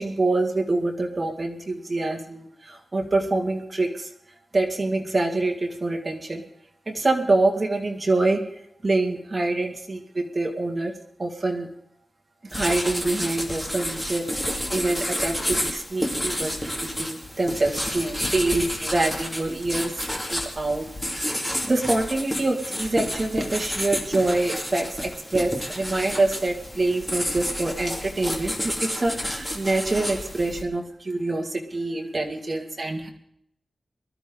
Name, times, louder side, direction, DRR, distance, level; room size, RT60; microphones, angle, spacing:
voice 1, 0.0-4.1 4.5-6.4 6.9-11.7 12.5-14.3 14.7-20.0 20.3-33.1, right 2 dB, 30° right, 1 dB, 2.2 m, -26 dB
sound 1, 12.5-30.6, equal, 10° left, 2.4 m, -30 dB
22.0 x 13.0 x 3.9 m, 0.72 s
wide cardioid pair, 140°, 0 cm